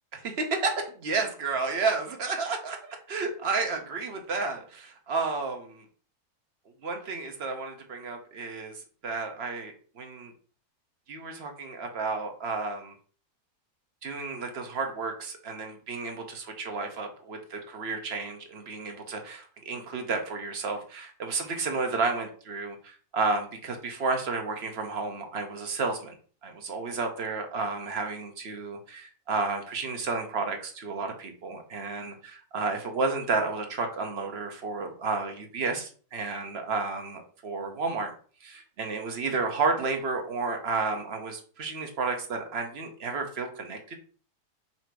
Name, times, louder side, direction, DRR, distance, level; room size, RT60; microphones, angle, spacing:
voice 1, 0.9-5.8 6.8-10.3 11.1-12.9 14.0-26.1 26.4-38.1 38.4-44.0, right 4 dB, 50° right, 4 dB, 0.9 m, -32 dB
4.2 x 2.8 x 4.5 m, 0.42 s
omnidirectional pair, 1.7 m